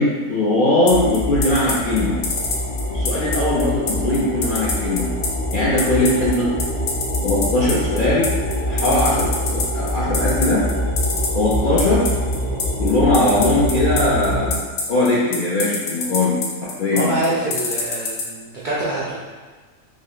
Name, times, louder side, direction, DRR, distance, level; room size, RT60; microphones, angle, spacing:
voice 1, 0.0-2.2 2.9-5.1 5.5-6.5 7.2-10.6 11.3-12.0 12.8-16.4 16.6-17.4, left 2 dB, 60° left, -7 dB, 0.5 m, -20 dB
sound 1, 0.9-18.2, left 4 dB, 80° left, 1.0 m, -24 dB
sound 2, 0.9-14.5, equal, 15° left, 0.5 m, -25 dB
voice 2, 16.9-19.2, right 1 dB, 65° right, -7 dB, 0.4 m, -25 dB
3.0 x 2.1 x 3.8 m, 1.4 s
omnidirectional pair, 1.4 m